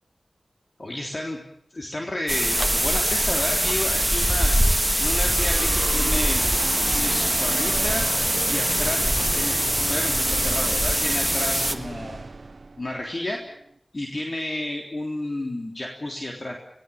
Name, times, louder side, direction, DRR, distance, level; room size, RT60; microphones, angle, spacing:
voice 1, 0.8-1.4 1.7-4.5 5.0-6.4 6.8-8.1 8.5-9.1 9.3-9.5 9.9-12.2 12.8-13.4 13.9-16.6, left 1 dB, 45° left, 0 dB, 3.7 m, -31 dB
sound 1, 2.3-11.7, right 1 dB, 10° right, 2.0 m, -23 dB
sound 2, 5.2-13.8, right 3 dB, 65° right, 1.1 m, -35 dB
29.0 x 19.0 x 7.3 m, 0.71 s
wide cardioid pair, 65°, 0 cm